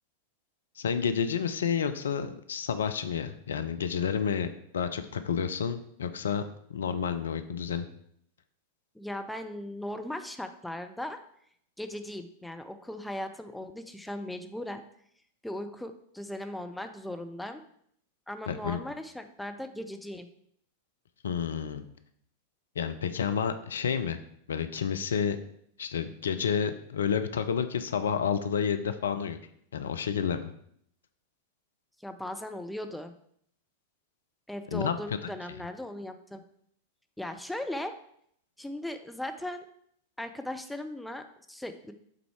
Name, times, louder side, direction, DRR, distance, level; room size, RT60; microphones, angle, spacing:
voice 1, 0.8-4.5 4.7-6.4 6.7-7.9 18.5-18.8 21.2-21.8 22.8-24.2 24.5-25.4 25.8-29.4 29.7-30.5 34.7-34.9 35.2-35.6, left 7 dB, 65° left, 10 dB, 0.5 m, -30 dB
voice 2, 8.9-11.2 11.8-14.8 15.4-17.6 18.3-20.3 32.0-33.1 34.5-36.4 37.2-37.9 38.6-39.7 40.2-41.9, left 1 dB, 5° left, 7 dB, 0.5 m, -38 dB
7.5 x 4.0 x 4.7 m, 0.68 s
figure-of-eight pair, 90°, 0 cm